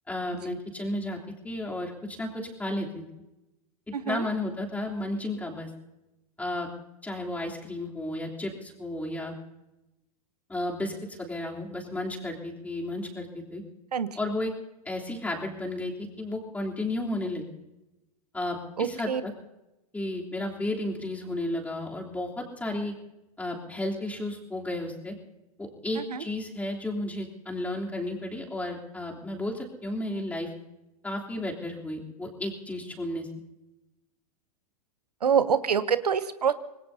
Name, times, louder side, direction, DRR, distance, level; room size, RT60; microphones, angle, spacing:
voice 1, 0.1-1.2 1.4-3.0 4.0-5.7 6.4-6.7 7.0-9.3 10.5-13.6 14.2-14.5 14.8-17.4 18.3-19.3 19.9-22.9 23.4-25.1 25.6-30.5 31.0-33.3, left 1 dB, 10° left, -2 dB, 3.3 m, -33 dB
voice 2, 3.9-4.3 13.9-14.1 18.8-19.2 26.1-26.2 35.2-36.5, right 7 dB, 90° right, 13 dB, 0.9 m, -25 dB
26.0 x 20.0 x 2.8 m, 0.97 s
hypercardioid pair, 110°, 20 cm